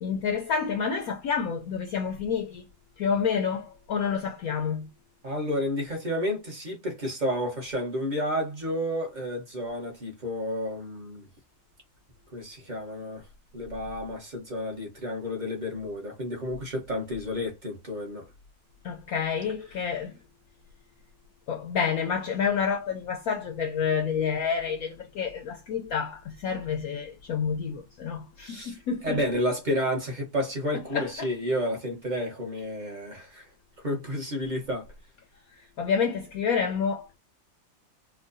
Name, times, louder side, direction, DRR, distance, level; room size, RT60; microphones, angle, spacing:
voice 1, 0.0-2.6 3.0-4.9 18.8-20.1 21.5-29.2 30.9-31.3 35.8-37.1, left 6 dB, 75° left, 0.8 m, -29 dB
voice 2, 5.2-11.3 12.3-13.2 13.5-18.2 28.4-28.7 29.0-33.5 33.8-34.9, equal, 40° right, 0.7 m, -31 dB
4.6 x 2.1 x 2.5 m
omnidirectional pair, 2.0 m